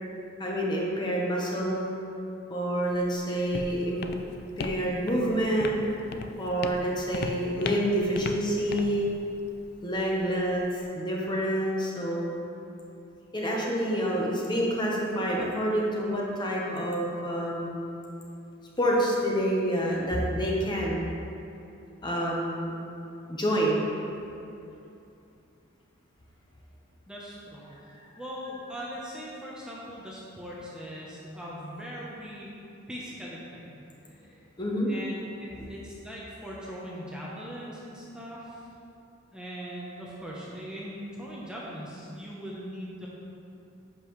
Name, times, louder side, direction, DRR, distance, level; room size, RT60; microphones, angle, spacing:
voice 1, 0.4-1.9 2.5-4.1 4.6-5.7 6.4-9.1 9.8-10.7 10.9-12.3 13.3-17.8 18.8-21.1 22.0-22.8 23.3-23.9 34.6-34.9, equal, 20° left, -3 dB, 1.0 m, -27 dB
Walk footsteps, 2.9-10.8, left 3 dB, 50° left, 0.4 m, -39 dB
voice 2, 10.1-10.4 27.1-32.5 32.9-34.4 34.9-35.3 35.7-38.7 39.3-43.1, equal, 5° right, -6 dB, 0.8 m, -40 dB
10.5 x 5.4 x 3.1 m, 2.7 s
head